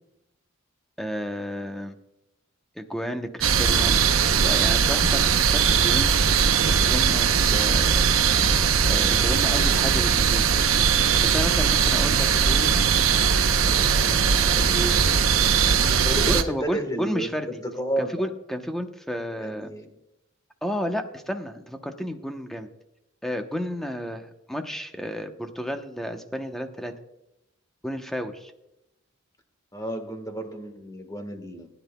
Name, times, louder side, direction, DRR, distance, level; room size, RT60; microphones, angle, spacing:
voice 1, 1.0-1.9 2.7-4.0 4.4-6.4 6.6-8.0 8.9-10.5 11.2-12.8 13.7-15.0 16.3-17.6 18.0-19.7 20.6-22.7 23.2-26.9 27.8-28.5, equal, ahead, 5 dB, 0.9 m, -32 dB
sound 1, 3.4-16.4, right 6 dB, 80° right, 0.8 m, -20 dB
voice 2, 15.8-18.1 19.4-19.9 29.7-31.7, right 1 dB, 20° left, 6 dB, 1.4 m, -31 dB
19.5 x 10.5 x 2.3 m, 0.87 s
head